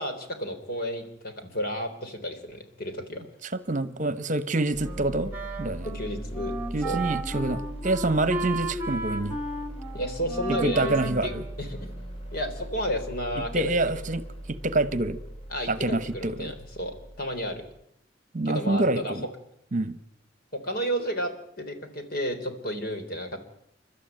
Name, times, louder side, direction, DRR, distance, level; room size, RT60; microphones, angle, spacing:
voice 1, 0.0-3.3 5.8-6.6 6.8-7.0 9.9-11.3 11.6-11.9 12.3-13.8 15.5-17.6 18.5-19.2 20.5-23.4, equal, 55° left, 6 dB, 3.6 m, -32 dB
voice 2, 3.4-5.3 5.6-5.9 6.7-9.4 10.6-11.4 13.5-14.2 14.5-15.2 15.7-16.5 18.3-19.3 19.7-20.0, right 2 dB, 40° right, 13 dB, 1.1 m, -26 dB
sound 1, 4.7-17.8, right 1 dB, 30° left, 3.2 m, -40 dB
Wind instrument woodwind instrument, 4.8-12.3, right 3 dB, 10° right, 2.4 m, -35 dB
30.0 x 12.5 x 9.2 m, 0.76 s
head